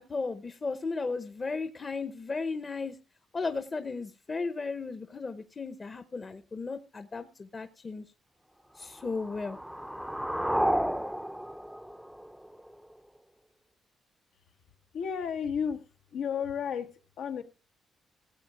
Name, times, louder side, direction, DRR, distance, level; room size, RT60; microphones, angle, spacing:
voice 1, 0.0-3.0 3.3-8.0 8.8-9.6, left 4 dB, 30° left, 0.9 m, -35 dB
sound 1, 8.9-12.9, equal, ahead, 0.6 m, -32 dB
voice 2, 14.9-17.4, left 7 dB, 85° left, 1.4 m, -33 dB
17.0 x 8.0 x 4.7 m
cardioid pair, 105°, 0 cm